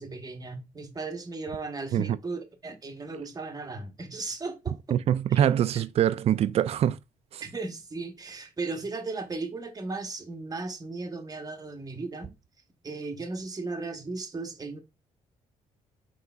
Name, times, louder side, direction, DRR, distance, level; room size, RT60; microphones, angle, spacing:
voice 1, 0.0-5.0 5.3-5.5 7.4-12.3 12.8-14.8, right 3 dB, 30° right, 1.1 m, -36 dB
voice 2, 4.9-7.0 7.3-7.4, right 10 dB, 50° right, 0.4 m, -24 dB
4.7 x 3.8 x 2.3 m
supercardioid pair, 70°, 13 cm